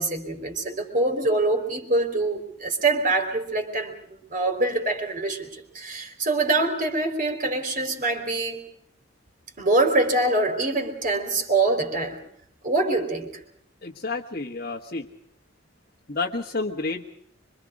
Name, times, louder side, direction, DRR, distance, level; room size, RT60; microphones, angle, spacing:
voice 1, 0.0-8.6 9.6-12.2 12.6-13.3, right 2 dB, 40° right, 4 dB, 3.9 m, -24 dB
voice 2, 13.8-15.1 16.1-17.1, left 3 dB, 45° left, 0 dB, 1.4 m, -30 dB
25.5 x 25.0 x 4.9 m, 0.68 s
head